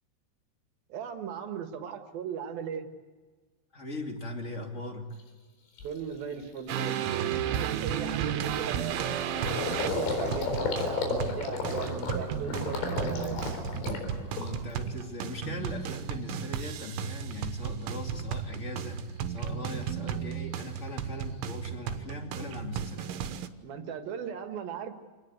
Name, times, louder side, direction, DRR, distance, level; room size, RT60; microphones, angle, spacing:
voice 1, 0.9-2.9 5.8-9.4 9.8-13.4 23.6-24.9, right 7 dB, 60° right, 6 dB, 3.0 m, -37 dB
voice 2, 3.7-5.2 14.3-23.1, left 1 dB, 25° left, 3 dB, 1.5 m, -39 dB
Gurgling, 5.2-5.3 5.8-6.0 6.4-6.6 6.8-14.9 15.2-15.9, left 4 dB, 75° left, 6.4 m, -34 dB
sound 1, 6.7-23.5, right 9 dB, 85° right, 3.5 m, -34 dB
28.0 x 19.5 x 8.1 m, 1.4 s
omnidirectional pair, 5.4 m